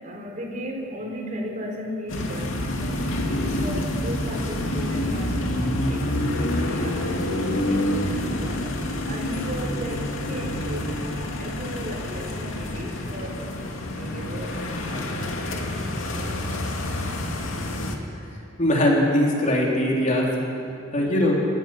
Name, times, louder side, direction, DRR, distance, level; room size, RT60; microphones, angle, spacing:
voice 1, 0.0-3.1 3.4-15.4, equal, 40° right, 1 dB, 3.8 m, -36 dB
sound 1, 2.1-18.0, left 1 dB, 80° left, 2.4 m, -27 dB
voice 2, 18.6-20.3 20.9-21.4, left 1 dB, 40° left, -2 dB, 3.8 m, -20 dB
29.0 x 17.0 x 6.1 m, 2.6 s
head